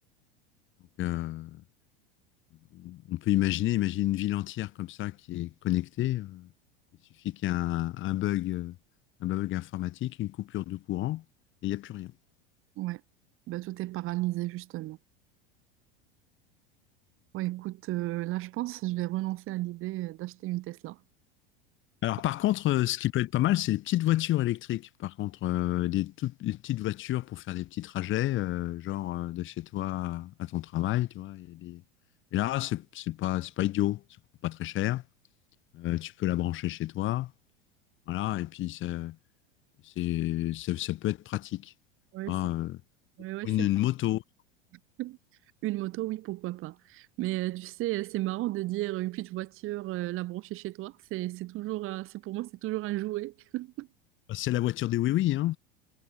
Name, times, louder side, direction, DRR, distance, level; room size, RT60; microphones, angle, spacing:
voice 1, 1.0-1.6 2.7-6.5 7.2-8.8 9.2-11.2 11.6-12.1 22.0-31.8 32.3-34.0 34.4-35.0 35.7-37.3 38.1-39.2 39.8-41.7 42.3-42.8 43.4-44.2 54.3-55.6, left 15 dB, 40° left, 3.5 m, -30 dB
voice 2, 13.5-15.0 17.3-21.0 42.1-42.4 43.2-43.7 45.0-45.2 45.6-53.9, right 17 dB, 45° right, 4.3 m, -34 dB
figure-of-eight pair, 80°, 29 cm